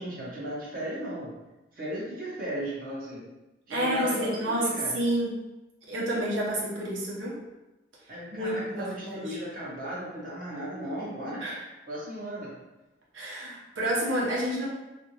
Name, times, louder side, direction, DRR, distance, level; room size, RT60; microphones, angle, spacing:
voice 1, 0.0-1.3 1.7-3.2 3.7-5.0 8.1-11.4 11.9-12.5, right 1 dB, 45° right, -7 dB, 0.8 m, -36 dB
voice 2, 3.7-5.4 5.9-7.4 8.3-9.4 11.4-11.6 13.1-14.7, right 1 dB, 90° right, -5 dB, 0.9 m, -29 dB
3.6 x 2.5 x 2.9 m, 1.0 s
head